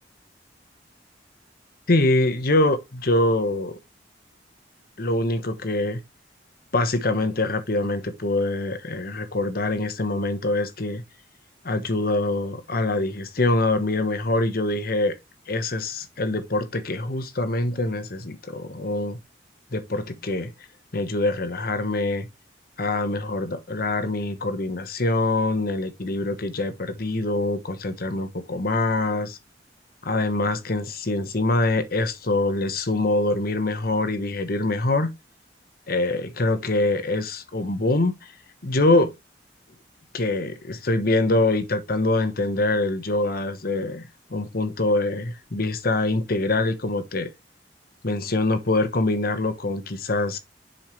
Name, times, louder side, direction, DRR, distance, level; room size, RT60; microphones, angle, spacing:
voice 1, 1.9-3.8 5.0-6.0 6.7-11.0 11.6-15.2 15.5-19.2 19.7-20.5 20.9-22.3 22.8-29.4 30.0-35.1 35.9-38.3 38.6-39.1 40.1-47.3 48.0-50.4, left 2 dB, 55° left, 1.1 m, -24 dB
7.5 x 5.6 x 3.1 m
head